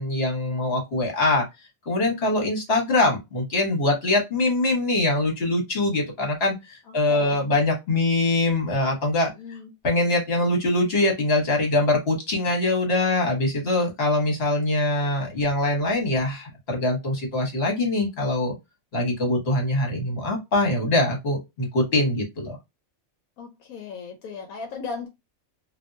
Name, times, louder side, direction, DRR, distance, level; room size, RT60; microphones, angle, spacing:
voice 1, 0.0-1.4 1.9-9.3 9.8-18.6 18.9-22.6, left 2 dB, 50° left, 1.5 m, -23 dB
voice 2, 6.9-7.4 9.4-9.7 23.4-25.1, left 4 dB, 85° left, 1.1 m, -37 dB
3.4 x 2.7 x 2.6 m
omnidirectional pair, 1.5 m